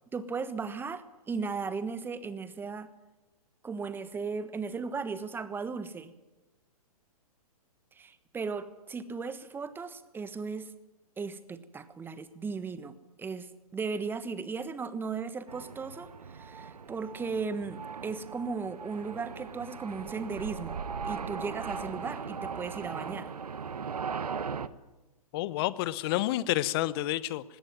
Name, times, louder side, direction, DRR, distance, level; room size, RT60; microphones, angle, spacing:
voice 1, 0.1-2.9 3.6-6.1 8.0-10.7 11.2-20.8 21.0-23.3, right 5 dB, 10° right, 13 dB, 1.3 m, -36 dB
sound 1, 15.5-24.7, right 5 dB, 80° right, 1.2 m, -39 dB
voice 2, 25.3-27.6, left 15 dB, 40° left, 18 dB, 1.0 m, -29 dB
20.0 x 17.5 x 9.4 m, 1.1 s
hypercardioid pair, 120°, 19 cm